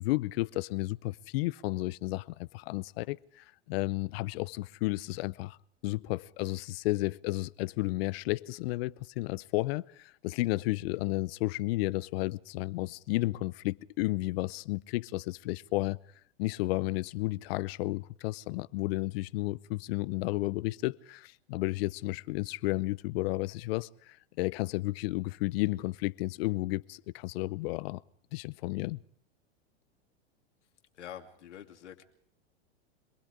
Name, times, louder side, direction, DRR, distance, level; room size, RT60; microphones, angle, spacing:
voice 1, 0.0-5.6 5.8-16.0 16.4-28.0 28.3-29.0, left 20 dB, 60° left, 0.8 m, -32 dB
voice 2, 30.9-32.0, left 10 dB, 80° left, 2.8 m, -46 dB
26.5 x 20.5 x 5.0 m
hypercardioid pair, 110°, 35 cm